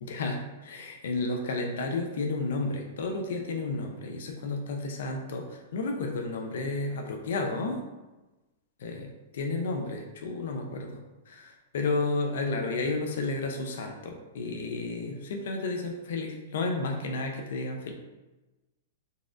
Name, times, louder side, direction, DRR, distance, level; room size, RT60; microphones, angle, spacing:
voice 1, 0.0-7.8 8.8-11.0 11.3-17.9, left 3 dB, 60° left, 3 dB, 0.4 m, -32 dB
4.0 x 2.4 x 2.5 m, 1.1 s
supercardioid pair, 180°, 0 cm